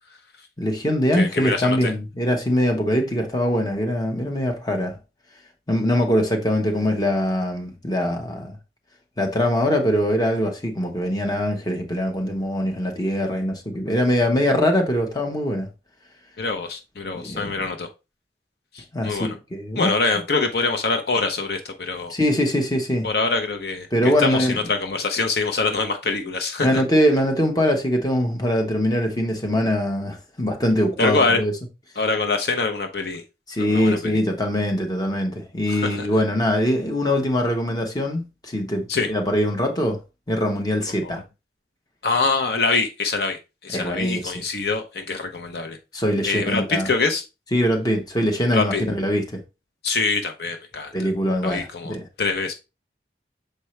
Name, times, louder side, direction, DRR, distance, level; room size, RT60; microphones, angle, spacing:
voice 1, 0.6-5.0 5.7-8.6 9.2-15.7 17.1-17.5 18.9-19.9 22.1-23.1 23.9-24.6 26.6-31.5 33.5-40.0 40.3-41.2 43.7-44.3 45.9-46.9 47.5-49.4 50.9-52.0, equal, 20° left, 1.0 m, -22 dB
voice 2, 1.1-1.9 16.4-17.9 18.7-19.3 19.8-22.1 23.0-26.8 31.0-31.4 32.0-33.2 33.6-34.2 35.7-36.1 38.9-39.1 41.0-41.2 42.0-45.8 46.2-47.2 48.5-48.8 49.8-51.1 51.4-52.5, left 4 dB, 65° left, 0.7 m, -24 dB
6.7 x 4.5 x 3.2 m
head